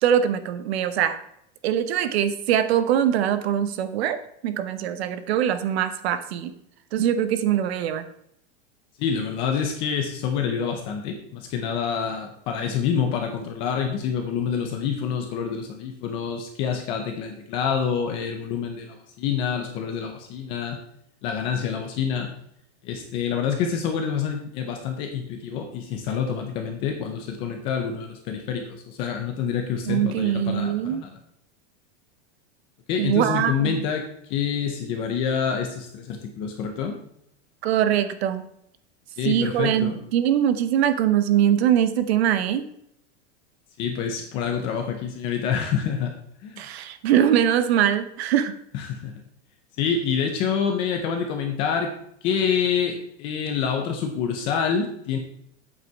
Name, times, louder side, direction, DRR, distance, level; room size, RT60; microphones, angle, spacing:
voice 1, 0.0-1.2 1.6-6.5 6.9-8.0 29.9-31.0 33.0-33.9 37.6-38.5 39.2-42.6 46.6-48.5, right 10 dB, 60° right, 11 dB, 1.0 m, -22 dB
voice 2, 9.0-20.8 21.2-22.3 22.8-31.1 32.9-37.0 39.2-40.0 43.8-46.1 46.4-46.6 48.7-49.1 49.8-51.9 52.2-55.2, left 7 dB, 15° left, 4 dB, 0.4 m, -27 dB
8.2 x 7.7 x 4.5 m, 0.73 s
supercardioid pair, 175°, 35 cm